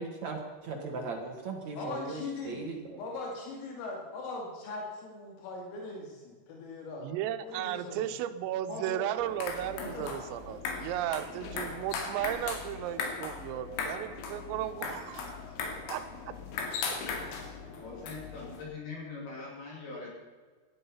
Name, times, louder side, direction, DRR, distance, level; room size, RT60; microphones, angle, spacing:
voice 1, 0.0-0.4 0.6-3.0, right 3 dB, 60° right, 2 dB, 2.0 m, -38 dB
voice 2, 1.8-2.7 2.9-7.1 7.4-8.1 8.7-9.1 9.8-10.0 16.2-17.8, left 2 dB, 90° left, 0 dB, 5.1 m, -41 dB
voice 3, 7.0-15.3 15.9-16.0, right 12 dB, 90° right, 10 dB, 3.6 m, -35 dB
sound 1, 9.2-18.6, left 5 dB, 70° left, 4.4 m, -38 dB
voice 4, 17.8-20.1, left 4 dB, 55° left, -3 dB, 4.3 m, -42 dB
17.5 x 13.0 x 5.7 m, 1.5 s
omnidirectional pair, 5.8 m